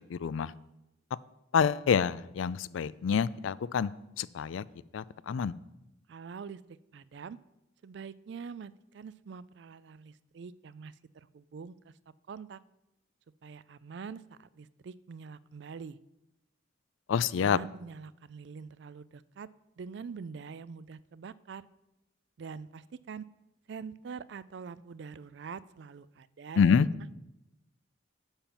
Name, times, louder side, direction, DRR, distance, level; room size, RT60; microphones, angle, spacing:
voice 1, 0.1-0.5 1.5-4.6 4.9-5.5 17.1-17.6 26.6-26.9, left 6 dB, 75° left, 19 dB, 0.3 m, -27 dB
voice 2, 6.1-7.4 7.8-11.8 12.3-12.6 13.4-16.0 17.2-19.5 19.8-21.7 22.4-23.2 23.7-26.7, right 5 dB, 60° right, 18 dB, 0.3 m, -44 dB
8.9 x 5.8 x 7.2 m, 0.93 s
head